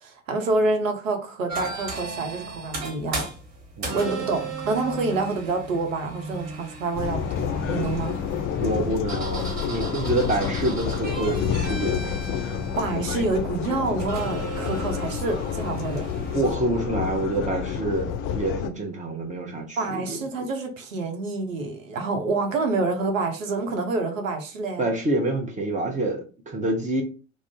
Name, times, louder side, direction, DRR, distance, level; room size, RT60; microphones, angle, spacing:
voice 1, 0.0-3.2 3.9-8.2 12.8-16.0 19.8-24.9, right 3 dB, 80° right, 0.7 m, -27 dB
sound 1, 1.5-16.4, right 3 dB, 45° right, 1.3 m, -36 dB
voice 2, 3.8-4.1 8.6-12.1 16.3-20.2 24.8-27.0, right 1 dB, 20° right, 0.7 m, -27 dB
sound 2, 7.0-18.7, left 7 dB, 35° left, 0.4 m, -29 dB
2.5 x 2.0 x 3.5 m
figure-of-eight pair, 65°, 39 cm